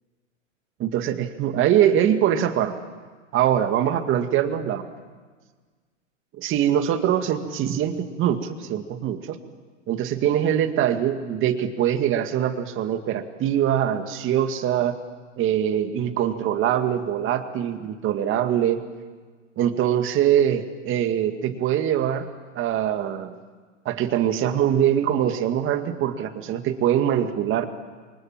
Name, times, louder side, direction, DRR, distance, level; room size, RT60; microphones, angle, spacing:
voice 1, 0.8-2.7 3.3-4.9 6.4-9.4 9.9-15.0 15.4-18.8 19.6-22.3 22.6-23.3 23.9-27.7, right 10 dB, 30° right, 8 dB, 2.1 m, -23 dB
28.5 x 24.5 x 7.6 m, 1.5 s
hypercardioid pair, 120°, 38 cm